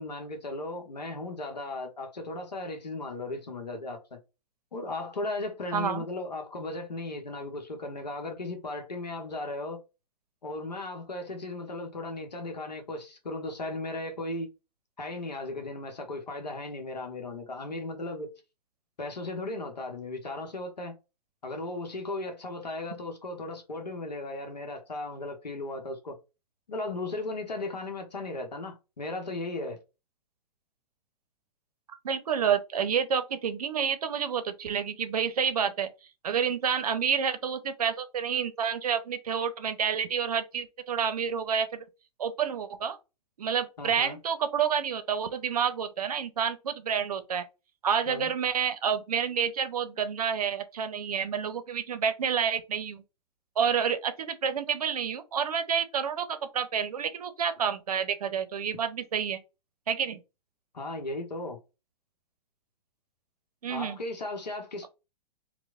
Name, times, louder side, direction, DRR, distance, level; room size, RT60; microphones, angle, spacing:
voice 1, 0.0-4.2 4.7-9.8 10.4-14.5 15.0-18.3 19.0-21.0 21.4-26.2 26.7-29.8 43.8-44.2 48.1-48.3 60.7-61.6 63.7-64.9, left 2 dB, 80° left, 0.8 m, -36 dB
voice 2, 5.7-6.0 32.0-35.9 36.2-41.9 42.2-43.0 43.4-47.4 47.8-53.0 53.6-59.4 59.9-60.2 63.6-64.0, right 7 dB, 65° right, 0.6 m, -29 dB
4.4 x 2.1 x 2.4 m
figure-of-eight pair, 105°, 21 cm